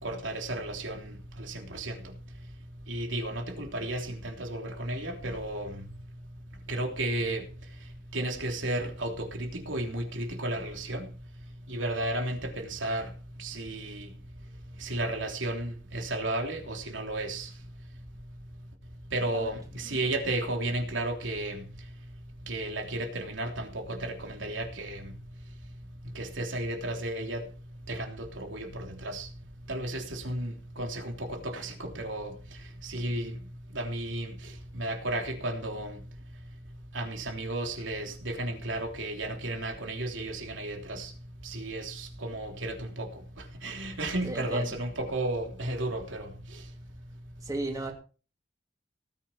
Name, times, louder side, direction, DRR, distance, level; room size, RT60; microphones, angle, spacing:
voice 1, 0.0-1.1 1.5-1.9 2.9-5.7 6.7-7.4 8.1-11.0 11.7-13.0 13.4-14.0 14.8-17.5 19.1-21.6 22.5-23.7 24.0-25.0 26.1-27.4 27.9-28.1 28.4-29.3 29.7-32.3 32.9-33.3 33.7-34.3 34.8-35.9 36.9-41.1 41.5-41.9 42.2-43.1 43.6-46.2, right 1 dB, 85° right, 3.4 m, -33 dB
voice 2, 44.2-44.8 47.4-47.9, right 2 dB, 20° right, 2.9 m, -35 dB
18.5 x 9.2 x 4.4 m
head